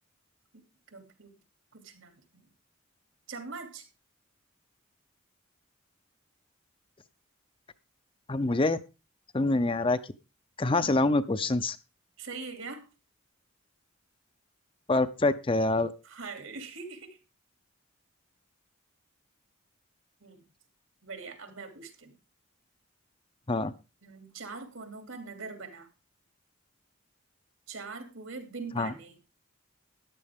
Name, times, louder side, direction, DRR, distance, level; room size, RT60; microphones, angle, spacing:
voice 1, 0.5-1.4 1.7-2.5 3.3-3.9 12.2-12.9 16.0-17.2 20.2-20.4 21.0-22.2 24.0-25.9 27.7-29.2, right 4 dB, 80° right, 6 dB, 2.8 m, -42 dB
voice 2, 8.3-8.8 9.3-10.0 10.6-11.8 14.9-15.9 23.5-23.7 28.8-28.9, left 2 dB, 25° left, 12 dB, 0.6 m, -25 dB
13.5 x 10.5 x 3.6 m, 0.30 s
head